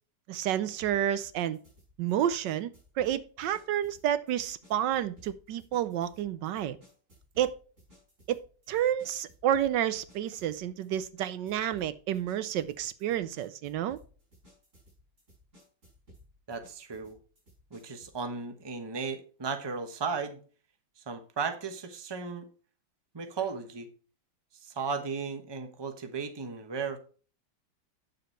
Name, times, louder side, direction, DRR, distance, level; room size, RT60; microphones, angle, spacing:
voice 1, 0.3-1.6 2.0-6.8 7.4-7.5 8.3-8.4 8.7-14.0, right 11 dB, 75° right, 1.3 m, -30 dB
sound 1, 0.8-18.2, equal, 40° right, 5.3 m, -59 dB
voice 2, 16.5-17.2 17.7-20.4 21.0-22.5 23.1-23.9 24.6-27.0, right 5 dB, 20° right, 0.8 m, -35 dB
9.1 x 6.9 x 4.4 m
omnidirectional pair, 2.0 m